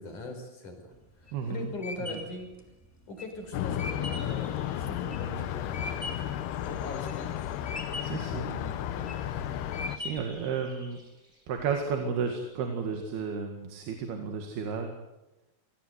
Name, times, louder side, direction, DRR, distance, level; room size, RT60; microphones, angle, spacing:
voice 1, 0.0-2.5 3.1-6.0 6.6-7.5 8.2-9.5, left 2 dB, 50° left, 4 dB, 6.1 m, -41 dB
sound 1, 0.9-6.4 6.8-7.4 7.7-8.3 8.8-9.3 9.7-10.4, left 3 dB, 5° left, 2.1 m, -39 dB
voice 2, 1.3-1.7 2.0-2.2 8.0-8.5 9.5-11.0 11.5-15.0, right 6 dB, 75° right, 4 dB, 4.0 m, -33 dB
sound 2, 3.4-12.0, equal, 10° right, 7.4 m, -59 dB
sound 3, 3.5-10.0, left 11 dB, 85° left, 3.1 m, -33 dB
26.5 x 19.5 x 8.2 m, 0.96 s
omnidirectional pair, 4.6 m